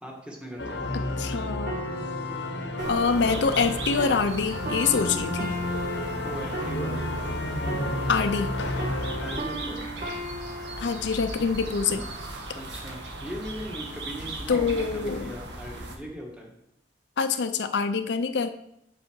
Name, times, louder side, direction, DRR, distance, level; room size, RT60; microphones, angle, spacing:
voice 1, 0.0-0.8 6.2-7.1 9.2-9.8 12.5-16.5, equal, 5° right, -1 dB, 1.5 m, -39 dB
sound 1, 0.6-9.4, left 2 dB, 90° left, 0.9 m, -31 dB
voice 2, 0.9-1.8 2.9-5.6 8.1-8.5 10.8-12.0 14.5-15.3 17.2-18.5, left 5 dB, 75° left, 9 dB, 0.5 m, -25 dB
sound 2, 1.7-8.5 8.8-12.4 13.0-13.2, right 2 dB, 50° right, 1.6 m, -38 dB
sound 3, 2.8-16.0, right 2 dB, 80° right, 1.3 m, -38 dB
8.1 x 5.6 x 4.5 m, 0.78 s
head